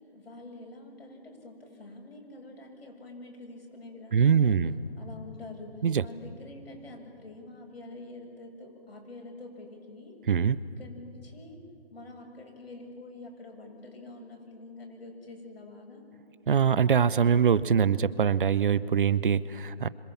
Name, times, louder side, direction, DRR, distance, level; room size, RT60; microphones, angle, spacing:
voice 1, 0.0-4.6 5.0-10.2 10.8-11.6 11.9-16.1, left 2 dB, 70° left, 1 dB, 7.9 m, -46 dB
voice 2, 4.1-4.7 5.8-6.1 10.3-10.6 16.5-19.9, right 7 dB, 55° right, 18 dB, 0.9 m, -23 dB
28.5 x 26.0 x 7.3 m, 2.6 s
figure-of-eight pair, 150°, 32 cm